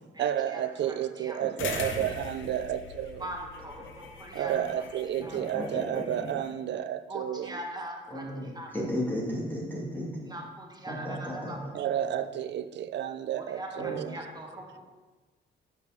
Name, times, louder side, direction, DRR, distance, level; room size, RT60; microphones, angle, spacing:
voice 1, 0.2-3.3 4.3-7.6 11.7-14.2, right 10 dB, 65° right, 10 dB, 0.6 m, -31 dB
voice 2, 0.9-1.4 3.2-4.5 5.2-5.4 7.1-8.8 10.2-11.8 13.4-14.8, right 1 dB, 20° right, 1 dB, 1.6 m, -41 dB
sound 1, 1.6-6.5, left 6 dB, 75° left, 0.9 m, -42 dB
voice 3, 5.3-6.3 8.1-8.5 8.7-10.4 10.9-11.6 13.8-14.0, equal, 10° left, -5 dB, 2.4 m, -35 dB
6.7 x 5.3 x 6.5 m, 1.3 s
cardioid pair, 90°, 20 cm